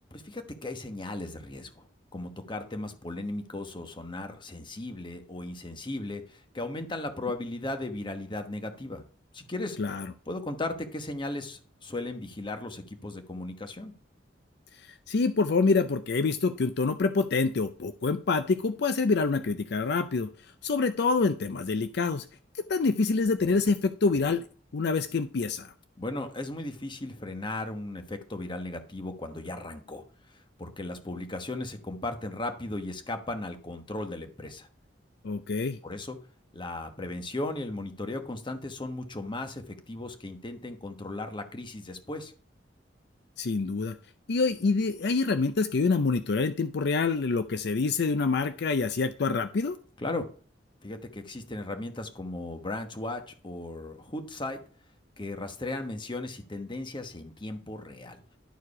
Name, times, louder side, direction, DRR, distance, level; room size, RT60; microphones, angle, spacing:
voice 1, 0.1-1.9 2.1-9.1 9.3-9.8 10.3-13.9 26.0-34.7 35.8-36.2 36.5-42.3 50.0-50.3 50.8-54.6 55.2-58.2, left 2 dB, 25° left, 7 dB, 1.1 m, -36 dB
voice 2, 15.1-20.3 20.6-22.2 22.7-24.4 24.7-25.7 35.2-35.8 43.4-44.0 44.3-49.8, left 4 dB, 65° left, 10 dB, 0.5 m, -26 dB
11.5 x 4.6 x 4.8 m, 0.41 s
head